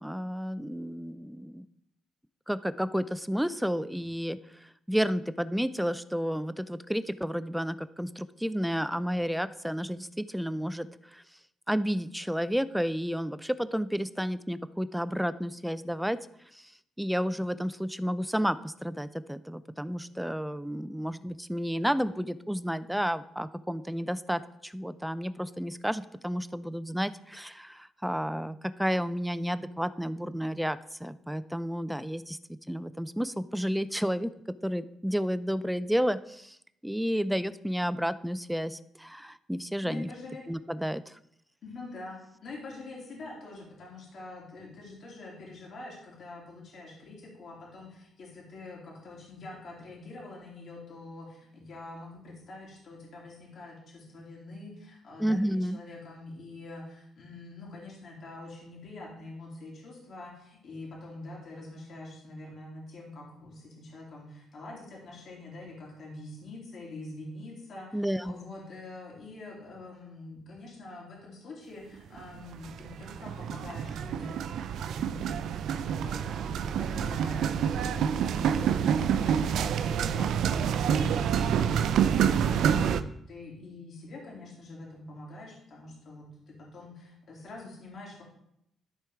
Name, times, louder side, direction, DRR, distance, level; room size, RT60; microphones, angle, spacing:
voice 1, 0.0-1.7 2.5-11.2 11.7-16.3 16.5-16.7 17.0-32.4 32.7-34.3 34.6-36.6 36.8-40.1 40.5-41.2 55.2-55.8 67.9-68.4, equal, 5° right, 14 dB, 0.4 m, -31 dB
voice 2, 39.8-40.4 41.6-74.4 74.9-75.5 75.8-88.2, left 2 dB, 60° left, -4 dB, 2.9 m, -45 dB
sound 1, 71.9-72.2 72.5-83.0, right 8 dB, 75° right, 0.4 m, -27 dB
13.0 x 4.5 x 3.6 m, 0.75 s
cardioid pair, 90°, 0 cm